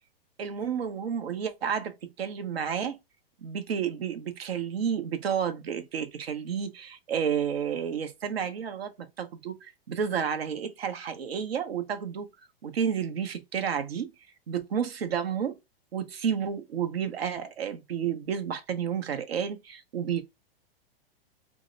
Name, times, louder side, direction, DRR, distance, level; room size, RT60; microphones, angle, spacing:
voice 1, 0.4-3.0 3.4-12.3 12.6-14.1 14.5-15.6 15.9-20.2, right 7 dB, 80° right, 0.8 m, -31 dB
2.8 x 2.1 x 3.7 m
hypercardioid pair, 120°, 30 cm